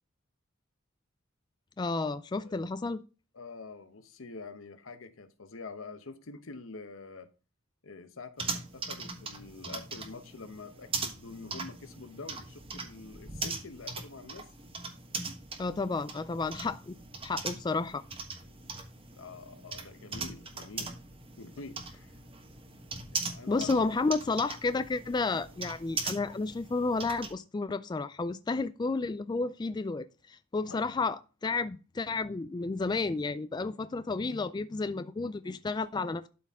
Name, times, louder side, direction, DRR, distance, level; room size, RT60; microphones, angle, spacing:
voice 1, 1.8-3.0 15.6-17.0 17.2-18.0 23.5-36.3, left 3 dB, 20° left, 0.3 m, -31 dB
voice 2, 3.3-7.3 7.8-14.5 19.2-21.0 21.4-22.2 23.1-24.3 30.7-30.8, left 3 dB, 80° left, 1.0 m, -46 dB
sound 1, 8.4-27.3, right 4 dB, 25° right, 1.3 m, -40 dB
12.0 x 4.2 x 3.6 m
head